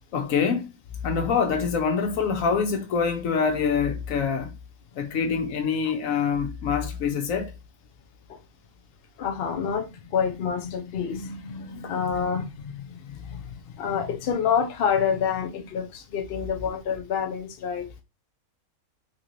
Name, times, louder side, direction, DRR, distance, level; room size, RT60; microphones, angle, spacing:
voice 1, 0.1-0.7 1.0-4.5 5.0-7.5 11.8-12.0, left 6 dB, 70° left, 1.1 m, -25 dB
voice 2, 9.2-18.0, left 7 dB, 55° left, 0.7 m, -28 dB
3.8 x 2.9 x 2.5 m
omnidirectional pair, 1.5 m